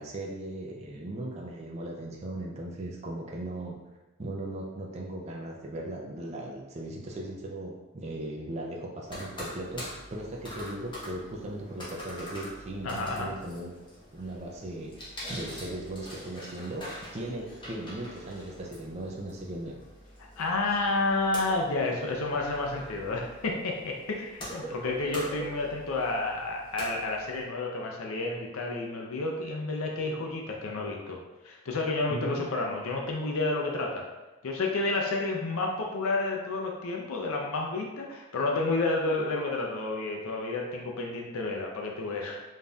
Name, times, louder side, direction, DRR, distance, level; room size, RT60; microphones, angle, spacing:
voice 1, 0.0-3.8 4.2-13.8 14.1-19.8 32.1-32.4, right 1 dB, 30° right, -1 dB, 0.4 m, -38 dB
sound 1, 9.1-27.4, equal, 20° left, 0.9 m, -44 dB
voice 2, 12.8-13.3 20.4-34.0 34.4-42.4, left 2 dB, 75° left, 0 dB, 0.5 m, -30 dB
5.2 x 2.6 x 2.3 m, 1.1 s
head